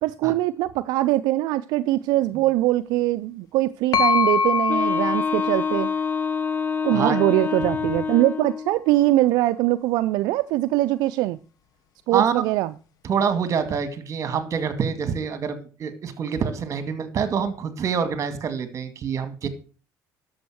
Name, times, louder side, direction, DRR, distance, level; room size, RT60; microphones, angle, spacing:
voice 1, 0.0-5.9 6.8-11.4 12.1-12.7, right 16 dB, 75° right, 0.5 m, -22 dB
sound 1, 3.9-7.7, left 5 dB, 60° left, 1.4 m, -25 dB
Wind instrument woodwind instrument, 4.7-8.8, left 6 dB, 30° left, 1.1 m, -27 dB
voice 2, 13.0-19.5, right 6 dB, 45° right, 2.2 m, -26 dB
11.5 x 7.2 x 6.3 m
cardioid pair, 100°, 7 cm